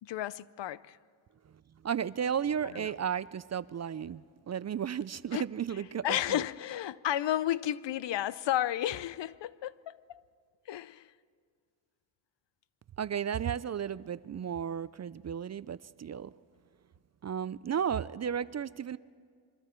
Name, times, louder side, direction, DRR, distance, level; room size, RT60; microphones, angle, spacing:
voice 1, 0.0-1.0 2.7-2.9 5.3-5.5 6.0-10.2 10.7-11.1, left 12 dB, 65° left, 0.6 m, -32 dB
voice 2, 1.8-6.4 13.0-16.3 17.2-19.0, right 8 dB, 35° right, 0.4 m, -34 dB
28.0 x 23.5 x 4.5 m
cardioid pair, 85°, 47 cm